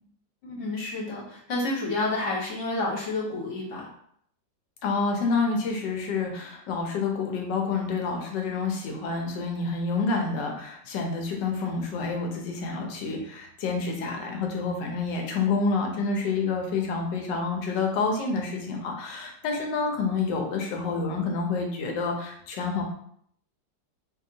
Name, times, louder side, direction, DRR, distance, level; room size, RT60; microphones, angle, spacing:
voice 1, 0.4-3.9, left 2 dB, 50° left, -4 dB, 1.3 m, -30 dB
voice 2, 4.8-22.8, left 4 dB, 75° left, 1 dB, 1.3 m, -28 dB
4.0 x 2.8 x 2.6 m, 0.66 s
omnidirectional pair, 2.0 m